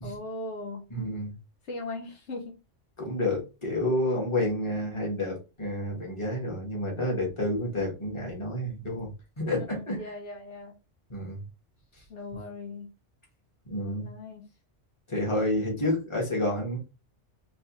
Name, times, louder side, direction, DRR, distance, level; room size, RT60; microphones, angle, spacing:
voice 1, 0.0-0.8 1.7-2.5 9.7-10.7 12.1-12.9 14.0-14.4, left 2 dB, 75° left, 1 dB, 1.1 m, -38 dB
voice 2, 0.9-1.3 3.0-9.1 9.4-10.1 11.1-11.4 13.7-14.1 15.1-16.8, left 1 dB, 25° left, -2 dB, 1.5 m, -29 dB
3.3 x 3.1 x 3.0 m, 0.29 s
omnidirectional pair, 1.2 m